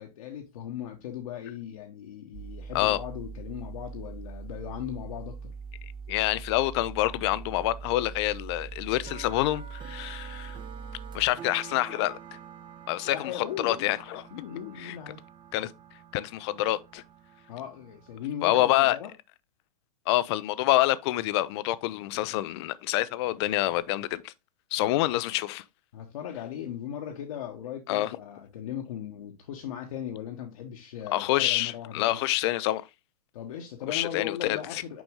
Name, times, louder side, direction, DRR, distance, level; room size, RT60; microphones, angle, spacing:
voice 1, 0.0-5.5 13.1-13.9 14.3-15.2 17.5-19.1 24.8-25.1 25.9-32.2 33.3-35.0, left 9 dB, 60° left, 1.1 m, -38 dB
sound 1, 2.3-11.3, right 5 dB, 70° right, 2.2 m, -41 dB
voice 2, 6.1-10.6 11.1-12.2 12.9-14.2 14.8-15.0 15.5-15.7 16.1-17.0 18.4-19.0 20.1-24.3 24.7-25.6 27.9-28.2 31.1-32.9 33.9-34.8, left 16 dB, 45° left, 0.5 m, -27 dB
sound 2, 8.5-18.3, right 8 dB, 25° right, 0.7 m, -48 dB
6.2 x 5.1 x 3.5 m
figure-of-eight pair, 105°, 20 cm